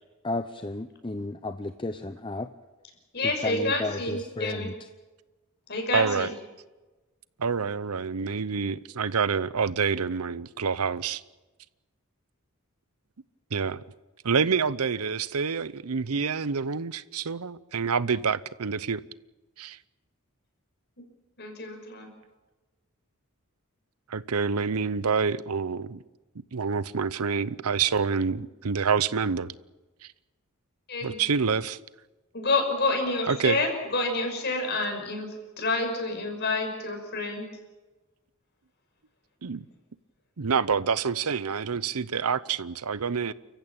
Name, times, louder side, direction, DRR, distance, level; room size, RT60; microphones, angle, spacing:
voice 1, 0.2-2.5 3.4-4.7, left 2 dB, 20° left, 0.7 m, -33 dB
voice 2, 3.1-4.7 5.7-6.3 21.4-22.1 30.9-31.2 32.3-35.3 35.6-37.4, left 2 dB, 50° left, 6.1 m, -28 dB
voice 3, 5.9-6.3 7.4-11.2 13.5-13.8 14.2-19.0 19.6-19.8 24.1-26.0 26.5-29.5 31.0-31.8 33.3-33.6 39.4-39.6 40.4-43.3, right 5 dB, 90° right, 0.8 m, -27 dB
29.5 x 15.0 x 8.8 m
head